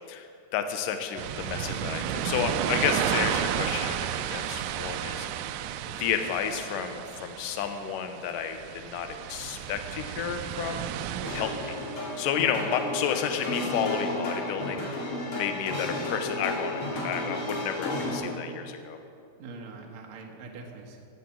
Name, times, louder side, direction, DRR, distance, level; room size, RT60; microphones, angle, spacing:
voice 1, 0.5-5.3 5.9-10.8 11.4-11.5 12.2-15.0 15.3-19.0, left 8 dB, 75° left, 7 dB, 2.3 m, -31 dB
sound 1, 1.2-12.3, right 10 dB, 80° right, 2.1 m, -33 dB
voice 2, 11.1-11.4 19.4-21.0, right 4 dB, 60° right, 1 dB, 2.3 m, -42 dB
sound 2, 11.2-18.2, left 2 dB, 40° left, 2.7 m, -32 dB
15.0 x 7.5 x 7.2 m, 2.5 s
omnidirectional pair, 4.3 m